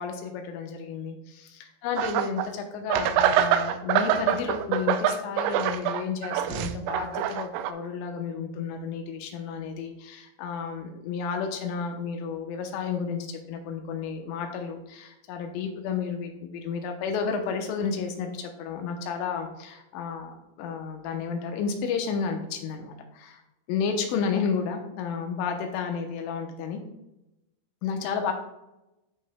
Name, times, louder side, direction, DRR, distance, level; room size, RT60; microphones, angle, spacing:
voice 1, 0.0-1.2 1.8-23.0 23.2-23.3 23.7-26.8 27.8-28.3, left 6 dB, 80° left, 4 dB, 3.3 m, -31 dB
sound 1, 2.0-2.5 2.9-7.7, right 10 dB, 85° right, 3.0 m, -25 dB
12.0 x 5.4 x 2.3 m, 0.94 s
omnidirectional pair, 5.8 m